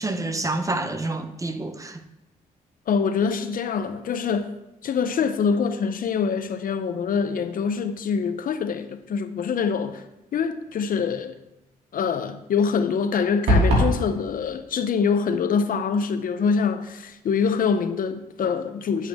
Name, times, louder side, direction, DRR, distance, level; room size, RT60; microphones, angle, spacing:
voice 1, 0.0-2.0, right 2 dB, 20° right, 0.9 m, -28 dB
voice 2, 2.9-4.5 4.8-10.0 10.3-11.3 11.9-19.1, left 6 dB, 65° left, 0.7 m, -25 dB
sound 1, 13.5-14.0, equal, 90° right, 2.9 m, -18 dB
10.5 x 8.2 x 3.6 m
cardioid pair, 75°, 16 cm